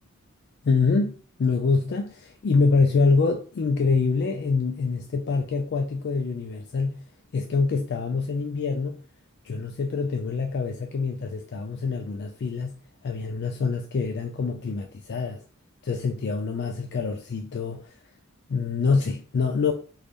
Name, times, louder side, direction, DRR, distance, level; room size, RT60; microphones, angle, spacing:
voice 1, 0.6-7.0 7.3-9.0 9.5-12.8 13.0-15.4 15.8-17.8 18.5-19.7, left 4 dB, 55° left, 0.4 m, -25 dB
3.2 x 2.6 x 3.5 m
head